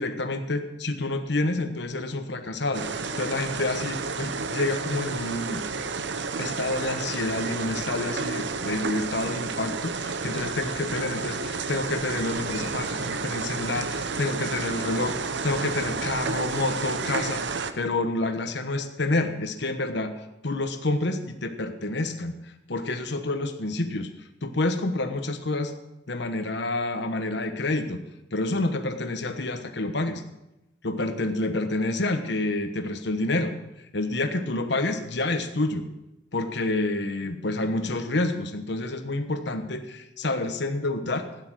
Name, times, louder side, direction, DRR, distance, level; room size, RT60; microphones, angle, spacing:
voice 1, 0.0-2.8 3.1-5.6 6.4-20.1 20.4-22.3 22.7-24.1 24.4-25.7 26.1-28.0 28.3-30.2 30.8-33.5 33.9-35.8 36.3-41.3, left 2 dB, 65° left, 7 dB, 1.2 m, -28 dB
sound 1, 2.7-17.7, right 4 dB, 65° right, 0.8 m, -31 dB
12.5 x 9.8 x 6.2 m, 0.92 s
head